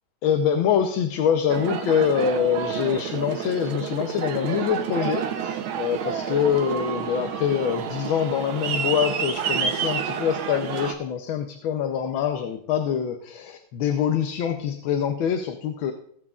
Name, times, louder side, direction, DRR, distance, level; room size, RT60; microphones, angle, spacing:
voice 1, 0.2-15.9, left 8 dB, 80° left, 6 dB, 1.5 m, -25 dB
Aircraft, 1.5-10.9, right 7 dB, 80° right, 1.7 m, -29 dB
18.5 x 7.5 x 2.4 m, 0.67 s
omnidirectional pair, 2.2 m